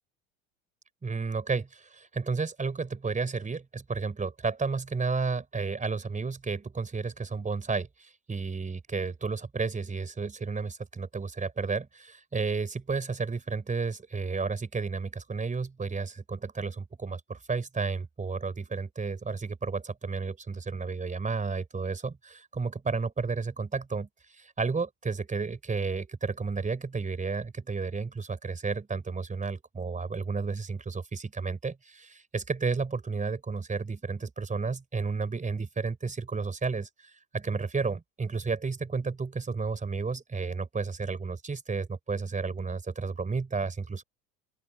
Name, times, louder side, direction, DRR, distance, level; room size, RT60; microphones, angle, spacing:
voice 1, 1.0-44.0, right 4 dB, 20° right, 4.9 m, -32 dB
open air
hypercardioid pair, 85°, 41 cm